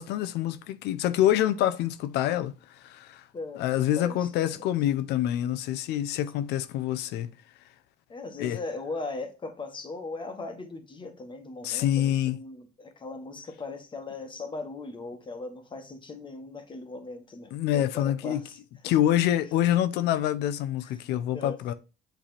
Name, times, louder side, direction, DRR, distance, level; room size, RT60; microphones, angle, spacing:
voice 1, 0.0-2.5 2.8-3.2 3.6-7.3 8.4-8.6 11.6-12.4 17.5-18.4 18.8-21.7, left 12 dB, 85° left, 0.6 m, -26 dB
voice 2, 3.3-4.7 8.1-18.6 19.4-19.5 20.8-21.0 21.3-21.7, left 3 dB, 30° left, 1.3 m, -39 dB
7.5 x 3.4 x 4.3 m
cardioid pair, 110°, 17 cm